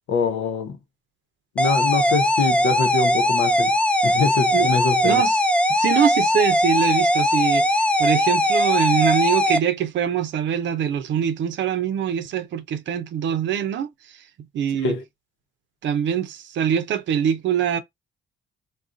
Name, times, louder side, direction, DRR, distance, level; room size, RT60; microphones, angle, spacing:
voice 1, 0.1-0.8 1.5-3.7 4.0-5.2 14.8-15.0, left 5 dB, 80° left, 0.8 m, -24 dB
sound 1, 1.6-9.6, left 1 dB, 5° left, 0.4 m, -20 dB
voice 2, 5.0-5.4 5.7-13.9 14.5-15.0 15.8-17.8, right 8 dB, 70° right, 0.6 m, -23 dB
2.5 x 2.3 x 3.7 m
cardioid pair, 90°, 20 cm